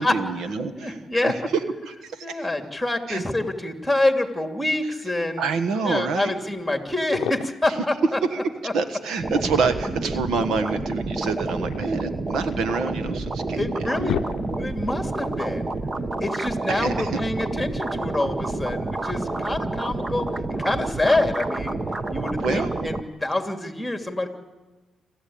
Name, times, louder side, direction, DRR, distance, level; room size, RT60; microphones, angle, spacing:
voice 1, 0.0-2.5 3.1-3.2 4.8-4.9 5.4-6.3 7.7-7.8 8.3-8.4 8.7-14.2 16.7-17.1 22.4-22.7, right 4 dB, 75° right, 10 dB, 1.5 m, -27 dB
voice 2, 0.7-1.3 2.2-5.4 5.9-8.2 13.6-15.7 16.2-21.8 22.1-24.3, left 2 dB, 5° left, 5 dB, 2.7 m, -26 dB
sound 1, 6.6-6.7 7.0-7.8 9.2-10.0 11.3-12.7 13.3-13.4 13.7-14.9, left 11 dB, 80° left, 0.6 m, -34 dB
sound 2, 9.2-23.0, right 2 dB, 25° right, 1.1 m, -29 dB
27.5 x 13.5 x 8.7 m, 1.2 s
cardioid pair, 90°, 0 cm